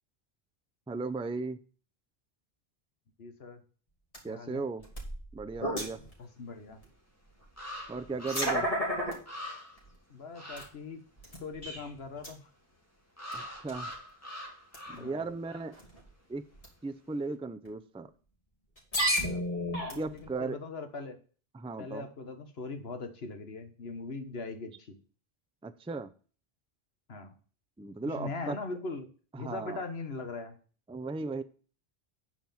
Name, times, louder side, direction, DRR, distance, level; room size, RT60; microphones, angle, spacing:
voice 1, 0.9-1.6 4.2-4.8 5.3-6.0 7.9-8.7 13.3-13.9 15.0-15.8 16.3-16.5 16.8-18.1 20.0-20.6 21.5-22.1 25.6-26.1 27.8-28.6 29.3-29.8 30.9-31.4, right 3 dB, 10° right, 11 dB, 0.4 m, -36 dB
voice 2, 3.2-3.6 4.3-4.6 6.2-6.8 10.1-11.0 11.4-12.5 14.9-15.3 19.2-19.4 19.9-21.2 21.8-25.0 27.1-27.3 28.1-29.1 29.4-30.6, left 3 dB, 75° left, 8 dB, 1.6 m, -40 dB
sound 1, 4.1-4.2 4.8-6.1 6.8-6.9 8.0-9.1 9.8-9.9 10.6-10.7 11.2-11.9 12.2-12.3 13.3-13.4 13.7-13.9 14.7-15.0 15.7-16.0 16.6-16.7 17.7-17.8 18.8-20.3, equal, 35° left, 3.2 m, -32 dB
sound 2, 6.7-6.8 7.6-8.7 9.0-9.1 9.3-9.9 10.3-10.7 13.2-15.2 15.4-15.7, left 1 dB, 15° left, 2.2 m, -43 dB
9.3 x 4.8 x 7.2 m, 0.40 s
omnidirectional pair, 1.1 m